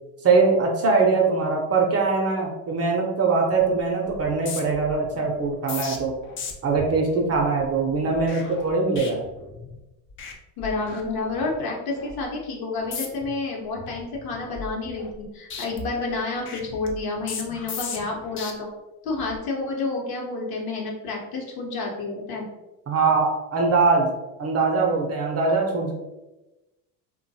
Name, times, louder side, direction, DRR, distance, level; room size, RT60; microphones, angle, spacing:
voice 1, 0.2-6.1 6.6-9.2 22.9-25.9, right 4 dB, 35° right, 1 dB, 0.5 m, -22 dB
sound 1, 3.5-3.8 4.1-9.8 10.1-10.3 10.6-11.6 12.0-12.2 12.8-13.3 13.7-15.2 15.5-18.5 19.1-19.4, left 5 dB, 30° left, 0.3 m, -38 dB
voice 2, 10.6-18.7 19.0-22.5, left 3 dB, 50° left, -1 dB, 0.8 m, -29 dB
2.5 x 2.2 x 2.6 m, 1.0 s
hypercardioid pair, 70°, 47 cm